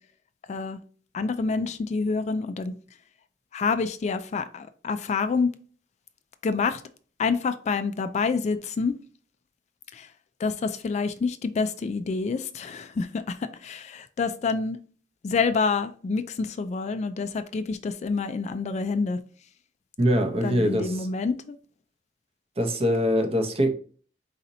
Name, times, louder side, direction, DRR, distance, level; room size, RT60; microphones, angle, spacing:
voice 1, 0.5-0.8 1.1-2.8 3.5-5.5 6.4-6.8 7.2-8.9 9.9-10.1 10.4-14.8 15.2-19.2 20.4-21.5, left 4 dB, 40° left, 0.3 m, -27 dB
voice 2, 20.0-21.1 22.6-23.7, equal, 30° right, 0.7 m, -23 dB
4.1 x 4.0 x 2.6 m
head